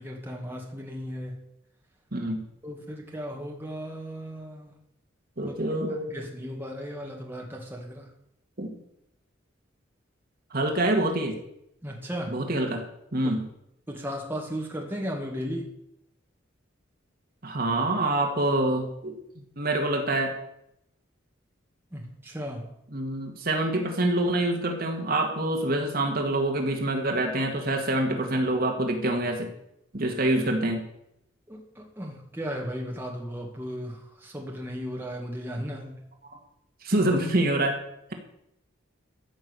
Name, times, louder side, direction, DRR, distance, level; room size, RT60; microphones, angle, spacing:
voice 1, 0.0-1.4 2.6-4.7 5.5-5.6 6.1-8.1 11.8-12.4 13.2-13.3 13.9-15.7 21.9-22.7 31.5-36.1, equal, 10° right, 0 dB, 2.1 m, -36 dB
voice 2, 2.1-2.4 5.4-6.2 8.6-8.8 10.5-11.4 12.3-12.8 13.1-13.5 17.4-20.3 22.9-29.5 29.9-30.9 36.8-37.8, right 1 dB, 50° right, 3 dB, 2.0 m, -26 dB
14.0 x 6.0 x 8.4 m, 0.79 s
head